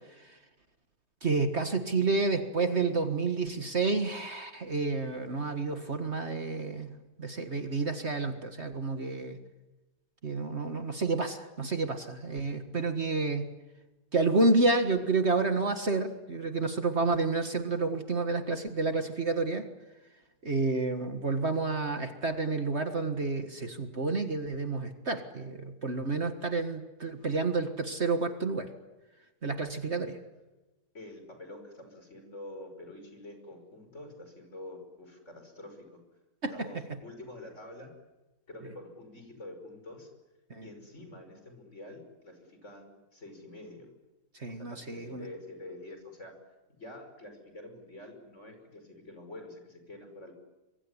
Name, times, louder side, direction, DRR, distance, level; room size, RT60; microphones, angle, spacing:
voice 1, 1.2-9.4 10.2-13.5 14.1-19.7 20.4-28.7 29.4-30.1 36.4-36.7 40.5-40.7 44.4-45.3, right 3 dB, 45° right, 7 dB, 1.9 m, -30 dB
voice 2, 30.9-36.0 36.5-37.9 38.5-40.1 40.6-43.9 44.5-46.4 46.8-50.3, left 1 dB, 45° left, 6 dB, 5.9 m, -47 dB
25.5 x 23.5 x 9.9 m, 1.1 s
omnidirectional pair, 1.7 m